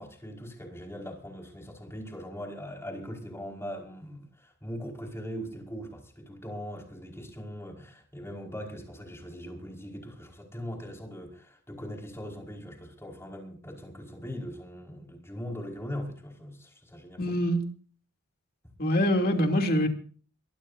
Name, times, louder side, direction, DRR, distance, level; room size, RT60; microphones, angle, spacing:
voice 1, 0.0-17.2, equal, 10° left, 5.1 m, -40 dB
voice 2, 17.2-17.6 18.8-19.9, equal, 45° left, 2.9 m, -24 dB
22.5 x 18.5 x 2.7 m
head